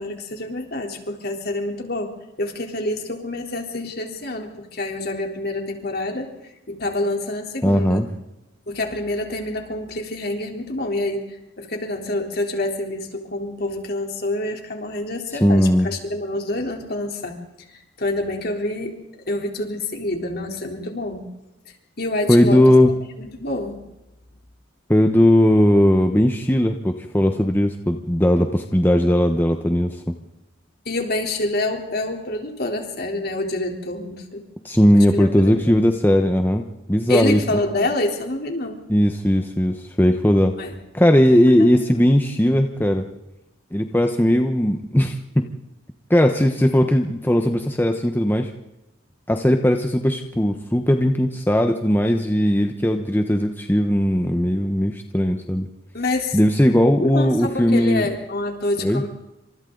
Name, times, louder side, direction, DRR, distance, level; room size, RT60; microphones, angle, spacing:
voice 1, 0.0-6.3 6.7-8.1 8.7-17.4 18.0-21.3 22.0-22.7 23.2-23.9 30.9-34.4 34.9-35.8 37.1-38.8 40.6-40.8 41.3-41.7 42.1-42.2 55.9-56.4 57.0-59.1, left 2 dB, 50° left, 2 dB, 3.7 m, -27 dB
voice 2, 7.6-8.1 15.4-15.9 22.3-22.9 24.9-30.1 34.6-37.4 38.9-40.5 40.9-43.1 43.7-45.5 46.1-48.5 49.3-55.7 56.3-58.1 58.8-59.0, equal, 10° left, 5 dB, 1.1 m, -18 dB
28.5 x 26.5 x 4.0 m, 0.94 s
head